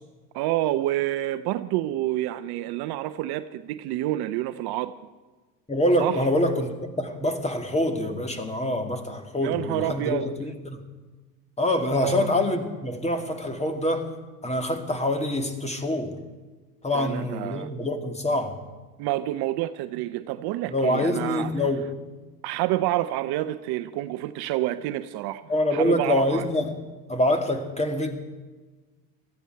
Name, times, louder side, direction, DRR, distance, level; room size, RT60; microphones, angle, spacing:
voice 1, 0.3-4.9 6.0-6.2 9.4-10.3 11.9-12.3 16.9-17.7 19.0-21.5 22.4-25.4 25.7-26.5, right 14 dB, 55° right, 12 dB, 0.8 m, -28 dB
voice 2, 5.7-10.8 11.6-14.1 14.4-16.1 16.8-18.6 20.7-21.9 25.5-26.8 27.1-28.1, left 1 dB, 15° left, 6 dB, 2.2 m, -25 dB
18.5 x 14.5 x 4.6 m, 1.3 s
hypercardioid pair, 85°, 48 cm